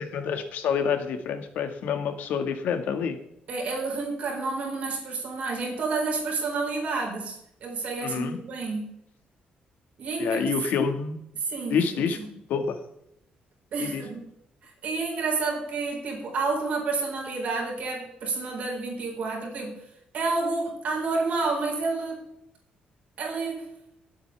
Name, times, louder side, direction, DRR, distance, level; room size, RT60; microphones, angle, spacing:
voice 1, 0.0-3.2 8.0-8.4 10.2-11.2 11.7-12.2 12.5-12.8 13.8-14.0, left 6 dB, 80° left, 7 dB, 1.7 m, -27 dB
voice 2, 3.5-9.0 10.0-10.5 11.4-12.3 13.7-14.3 14.6-19.8 20.1-22.3 23.2-23.7, right 3 dB, 55° right, 0 dB, 4.5 m, -30 dB
23.0 x 8.6 x 3.4 m, 0.77 s
cardioid pair, 155°, 3 cm